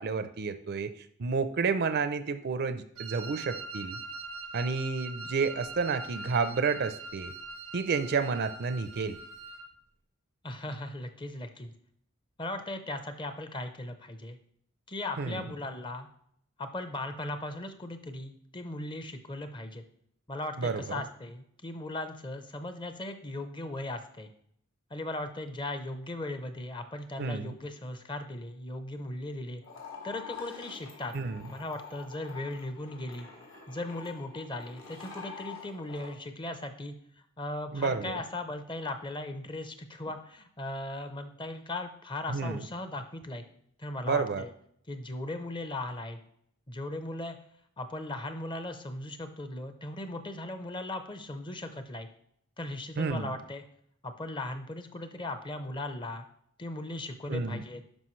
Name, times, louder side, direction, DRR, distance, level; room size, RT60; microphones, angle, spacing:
voice 1, 0.0-4.0 4.5-7.3 7.7-9.2 15.2-15.4 20.6-21.0 27.2-27.6 31.1-31.4 37.7-38.2 42.3-42.7 44.0-44.4 53.0-53.4 57.3-57.6, right 4 dB, 50° right, 12 dB, 0.5 m, -30 dB
Wind instrument woodwind instrument, 3.0-9.7, right 3 dB, 90° right, 0.7 m, -42 dB
voice 2, 10.4-11.7 12.4-14.4 14.9-16.1 16.6-19.8 20.3-24.3 24.9-29.6 30.0-31.1 31.5-33.3 33.7-36.9 37.4-43.4 43.8-44.5 44.9-46.2 46.7-47.4 47.8-52.1 52.6-53.6 54.0-56.3 56.6-57.8, left 2 dB, 25° left, 8 dB, 0.6 m, -38 dB
sound 1, 29.6-36.1, left 6 dB, 70° left, 2.3 m, -46 dB
11.5 x 4.8 x 3.1 m, 0.68 s
head